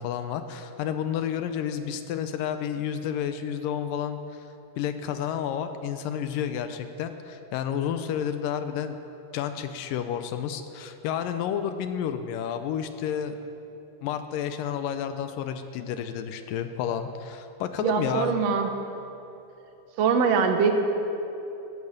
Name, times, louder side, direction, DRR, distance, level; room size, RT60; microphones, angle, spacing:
voice 1, 0.0-4.5 4.8-9.0 9.3-13.4 14.0-18.4, left 9 dB, 80° left, 9 dB, 2.2 m, -30 dB
voice 2, 17.8-18.7 20.0-20.7, right 6 dB, 75° right, 5 dB, 1.5 m, -22 dB
13.5 x 10.5 x 8.5 m, 2.9 s
omnidirectional pair, 4.3 m